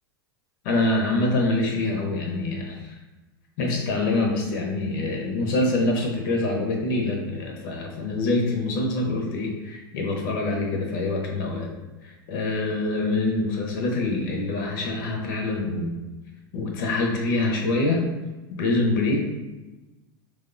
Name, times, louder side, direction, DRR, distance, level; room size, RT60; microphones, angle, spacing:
voice 1, 0.6-2.9 3.6-11.7 12.0-15.9 16.5-18.0 18.6-19.2, left 2 dB, 60° left, 1 dB, 0.6 m, -25 dB
3.0 x 2.0 x 2.4 m, 1.1 s
hypercardioid pair, 105°, 13 cm